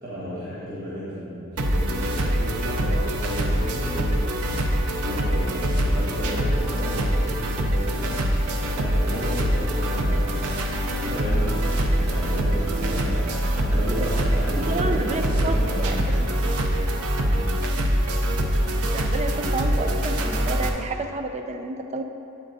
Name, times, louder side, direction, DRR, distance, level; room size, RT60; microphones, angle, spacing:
voice 1, 0.0-4.7 5.0-10.5 10.9-11.7 12.0-16.0 17.3-17.6, equal, 45° right, -10 dB, 1.5 m, -33 dB
sound 1, 1.6-20.7, equal, 85° right, 0.7 m, -24 dB
sound 2, 8.9-16.5, equal, 5° left, 1.1 m, -36 dB
voice 2, 14.7-16.1 18.9-22.0, right 2 dB, 30° right, 5 dB, 0.4 m, -30 dB
8.9 x 8.0 x 2.6 m, 2.8 s
head